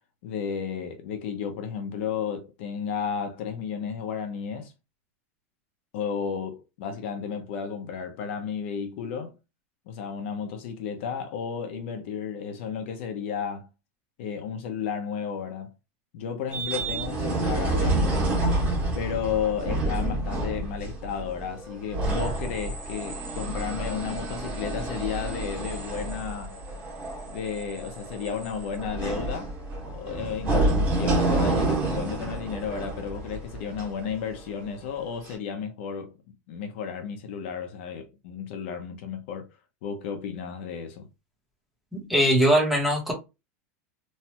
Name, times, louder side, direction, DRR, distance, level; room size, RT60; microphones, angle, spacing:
voice 1, 0.2-4.7 5.9-9.4 9.9-13.7 14.2-15.7 16.1-18.4 18.9-26.6 27.3-29.5 29.9-36.1 36.5-39.5 39.8-41.1, left 7 dB, 55° left, 0.8 m, -33 dB
sound 1, 16.5-34.7 35.3-35.4, right 2 dB, 25° right, 1.1 m, -29 dB
voice 2, 41.9-43.1, equal, ahead, 0.9 m, -21 dB
3.1 x 2.3 x 2.9 m
supercardioid pair, 170°, 8 cm